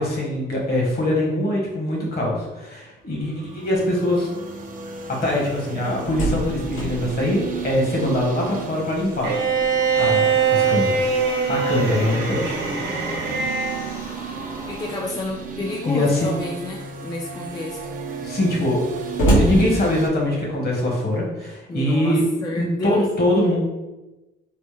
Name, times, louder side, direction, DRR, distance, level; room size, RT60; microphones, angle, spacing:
voice 1, 0.0-4.3 5.1-9.3 10.0-11.1 11.5-12.6 15.8-16.3 18.2-18.8 19.4-22.2 22.6-23.6, left 1 dB, 50° left, -2 dB, 1.2 m, -23 dB
sound 1, 3.2-20.1, right 5 dB, 45° right, 0.4 m, -34 dB
Slam, 5.7-8.5 8.9-9.0 9.4-15.1 16.0-16.5 17.0-17.1 17.4-20.5, right 1 dB, 90° left, 1.2 m, -29 dB
Bowed string instrument, 9.2-13.9, right 5 dB, 60° right, 0.9 m, -22 dB
voice 2, 14.7-17.8 21.7-23.0, left 2 dB, 20° left, -1 dB, 0.4 m, -30 dB
3.1 x 2.1 x 3.2 m, 1.0 s
cardioid pair, 90°, 20 cm